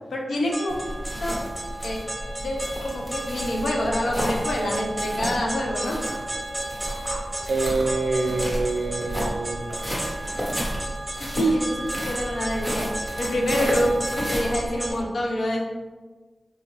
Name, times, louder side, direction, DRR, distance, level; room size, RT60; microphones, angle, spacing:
voice 1, 0.1-0.7 1.2-1.4 1.8-2.0 2.4-6.0 11.2-15.6, equal, 90° left, -1 dB, 0.6 m, -26 dB
sound 1, 0.5-14.9, right 1 dB, 15° right, 0.7 m, -33 dB
sound 2, 0.7-15.0, equal, 20° left, 1.0 m, -33 dB
voice 2, 7.5-9.8, right 3 dB, 70° right, 3 dB, 0.4 m, -26 dB
4.2 x 2.3 x 3.0 m, 1.3 s
wide cardioid pair, 100°, 0 cm